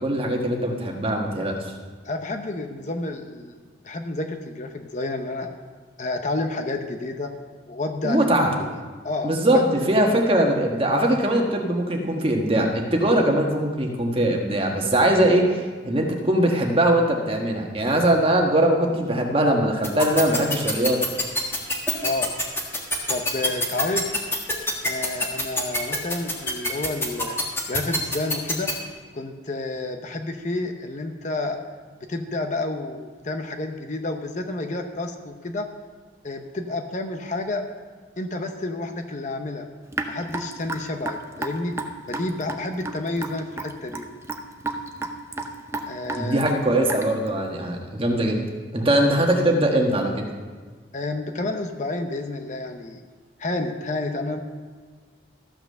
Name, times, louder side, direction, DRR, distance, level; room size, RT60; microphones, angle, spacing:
voice 1, 0.0-1.5 8.0-8.6 9.2-21.0 46.2-48.4 48.7-50.3, right 1 dB, 30° right, 1 dB, 1.4 m, -21 dB
voice 2, 2.0-3.6 3.8-5.5 6.0-7.3 7.6-8.7 9.0-9.7 22.0-22.3 23.1-24.1 24.8-27.3 27.7-28.7 29.1-31.6 32.1-35.7 36.2-37.6 38.2-39.6 40.1-41.8 42.1-44.1 45.9-46.6 50.9-53.0 53.4-54.4, left 2 dB, 40° left, 6 dB, 0.8 m, -30 dB
sound 1, 19.8-28.7, left 1 dB, 15° left, 1.5 m, -24 dB
Raindrop / Drip, 39.9-47.3, right 2 dB, 15° right, 0.6 m, -32 dB
14.0 x 5.9 x 6.6 m, 1.5 s
head